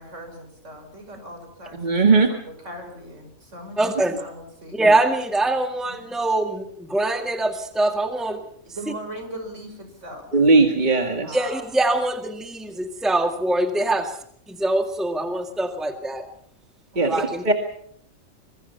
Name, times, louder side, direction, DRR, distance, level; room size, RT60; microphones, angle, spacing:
voice 1, 0.0-1.8 2.1-4.8 5.8-6.0 8.6-10.3 11.2-11.6 13.8-14.0 16.9-17.3, right 1 dB, 60° right, 5 dB, 6.1 m, -39 dB
voice 2, 1.8-2.3 10.3-11.4 17.0-17.1 17.4-17.5, right 3 dB, 35° right, 4 dB, 2.2 m, -17 dB
voice 3, 3.8-4.1 4.7-8.4 11.3-14.1 14.5-16.3 17.1-17.5, right 2 dB, ahead, 6 dB, 1.9 m, -23 dB
25.5 x 23.0 x 5.8 m, 0.63 s
omnidirectional pair, 1.4 m